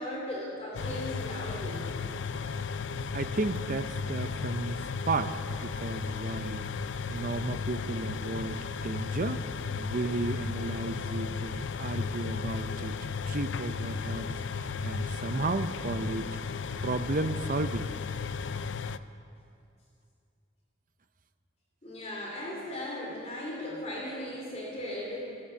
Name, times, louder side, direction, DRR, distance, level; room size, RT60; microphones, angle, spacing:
voice 1, 0.0-1.9 21.8-25.5, left 1 dB, 30° left, -4 dB, 3.1 m, -37 dB
sound 1, 0.7-19.0, left 5 dB, 60° left, 0.4 m, -35 dB
voice 2, 3.1-6.7 7.1-9.4 9.8-16.3 16.8-17.9, right 3 dB, 40° right, 10 dB, 0.6 m, -33 dB
14.5 x 13.0 x 7.0 m, 2.5 s
head